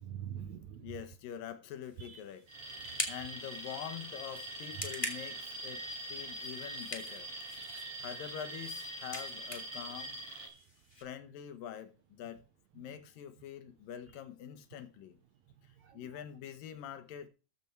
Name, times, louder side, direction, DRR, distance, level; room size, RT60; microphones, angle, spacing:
voice 1, 0.0-0.9 2.0-2.2 2.8-3.4 4.8-4.9 5.4-5.5 5.8-6.3 7.5-8.3 10.4-10.6 15.8-16.0, right 8 dB, 80° right, 1.6 m, -47 dB
voice 2, 0.8-2.4 3.1-5.8 6.1-7.3 8.0-10.2 11.0-12.4 12.7-15.2 15.9-17.3, left 9 dB, 75° left, 2.8 m, -45 dB
sound 1, 1.8-11.0, left 1 dB, 10° left, 1.8 m, -45 dB
Alarm, 2.5-10.5, right 1 dB, 45° right, 6.2 m, -43 dB
14.0 x 7.0 x 4.6 m
omnidirectional pair, 4.1 m